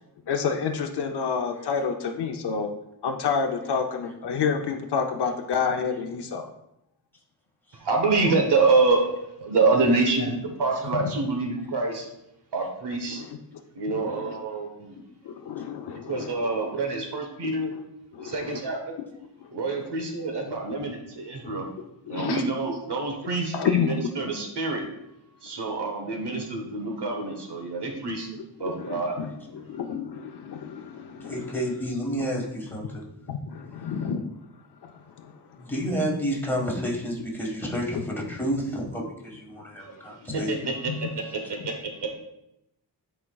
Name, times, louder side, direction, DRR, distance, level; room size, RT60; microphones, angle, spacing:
voice 1, 0.3-2.7 3.0-6.5 10.9-11.1 13.1-13.3 13.9-14.4 15.2-16.5 17.7-17.8 18.1-18.6 21.4-21.5 22.1-22.4 23.5-24.0 28.6-31.6 32.8-32.9 33.3-34.2 34.8-34.9 35.2-35.3 40.3-41.0, left 6 dB, 70° left, 3 dB, 0.6 m, -29 dB
voice 2, 7.8-9.1 9.4-12.0 12.5-13.2 13.8-15.0 16.1-17.7 18.2-19.0 19.5-21.7 22.1-24.8 25.4-28.3 28.6-29.2 40.3-41.7 42.0-42.2, right 3 dB, 70° right, 2 dB, 1.1 m, -26 dB
voice 3, 31.3-33.0 35.6-40.5, equal, 5° left, -2 dB, 1.5 m, -30 dB
10.5 x 4.4 x 2.3 m, 0.84 s
wide cardioid pair, 110°, 42 cm